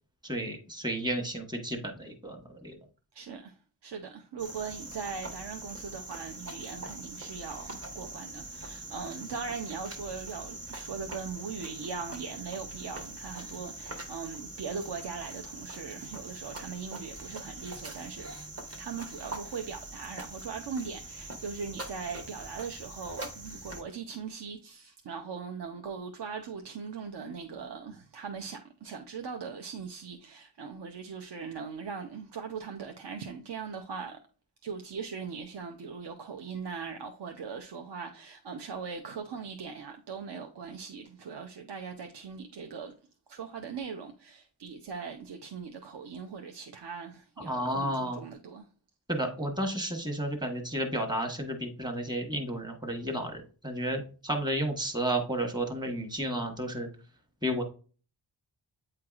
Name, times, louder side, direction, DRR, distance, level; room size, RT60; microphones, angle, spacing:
voice 1, 0.2-2.8 47.4-48.2 49.1-56.9 57.4-57.6, right 1 dB, 10° right, 1.2 m, -32 dB
voice 2, 3.1-18.3 18.8-34.2 34.6-42.9 43.3-48.7, right 5 dB, 60° right, 0.7 m, -40 dB
Cricket, 4.4-23.8, right 2 dB, 30° right, 1.1 m, -43 dB
8.6 x 4.6 x 2.4 m
wide cardioid pair, 130°, 48 cm